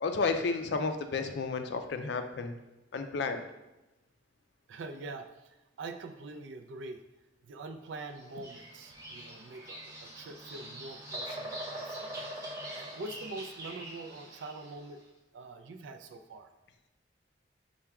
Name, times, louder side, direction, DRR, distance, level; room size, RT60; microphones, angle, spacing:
voice 1, 0.0-2.5 2.9-3.5, left 4 dB, 60° left, 7 dB, 0.4 m, -32 dB
voice 2, 4.7-7.0 7.4-15.0 15.3-16.5, right 2 dB, 75° right, 6 dB, 0.4 m, -44 dB
Bird vocalization bird call bird song, 8.2-14.8, right 1 dB, 15° right, 0.7 m, -43 dB
5.6 x 2.2 x 3.5 m, 1.0 s
head